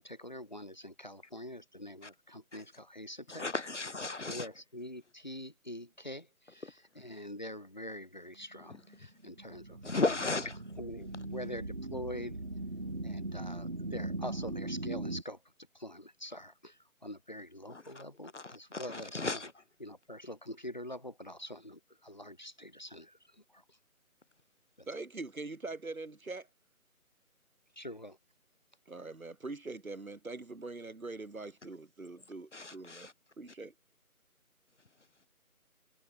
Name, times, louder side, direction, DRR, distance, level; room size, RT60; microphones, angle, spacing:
voice 1, 0.0-3.5 4.3-10.5 10.7-12.4 13.0-15.4 15.7-19.5 19.8-23.8 24.8-24.9 27.7-28.1, left 1 dB, 30° left, 1.4 m, -45 dB
voice 2, 3.3-4.4 9.8-10.5 18.3-18.4 18.7-19.5 32.5-33.1, left 3 dB, 50° left, 1.2 m, -34 dB
sound 1, 8.5-15.2, right 2 dB, 40° right, 1.4 m, -40 dB
voice 3, 24.9-26.5 28.9-33.1 33.4-33.7, right 3 dB, 65° right, 3.7 m, -43 dB
figure-of-eight pair, 180°, 44 cm